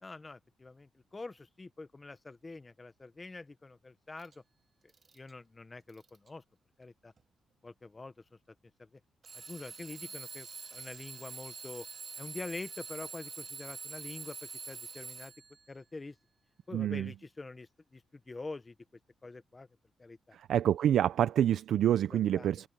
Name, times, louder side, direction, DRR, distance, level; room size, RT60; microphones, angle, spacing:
voice 1, 0.0-4.4 5.1-6.4 6.8-7.1 7.6-8.1 8.8-9.0 9.3-11.9 12.2-15.3 15.7-16.2 16.7-18.7 19.2-19.7 20.0-20.4 22.1-22.6, left 3 dB, 20° left, 0.8 m, -46 dB
Alarm / Clock, 4.2-4.3 4.9-5.3 5.9-6.3 7.2-7.3 9.2-15.6, right 5 dB, 35° right, 0.9 m, -45 dB
voice 2, 16.7-17.1 20.3-22.7, right 10 dB, 70° right, 0.5 m, -27 dB
wide cardioid pair, 175°, 0 cm